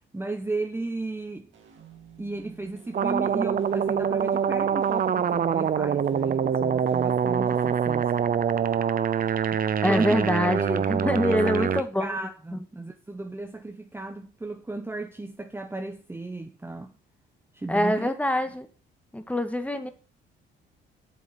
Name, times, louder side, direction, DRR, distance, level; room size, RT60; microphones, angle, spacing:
voice 1, 0.1-1.5 2.2-8.3 9.5-10.2 10.5-11.7 12.0-16.9 17.5-18.1, right 2 dB, 10° right, 1.0 m, -34 dB
sound 1, 1.5-8.1, right 8 dB, 70° right, 2.7 m, -51 dB
sound 2, 2.9-11.8, right 8 dB, 45° right, 0.7 m, -25 dB
voice 2, 9.8-12.1 12.5-12.6 17.7-18.7 19.1-19.9, left 1 dB, 5° left, 1.8 m, -25 dB
8.3 x 7.1 x 7.0 m
cardioid pair, 90°, 20 cm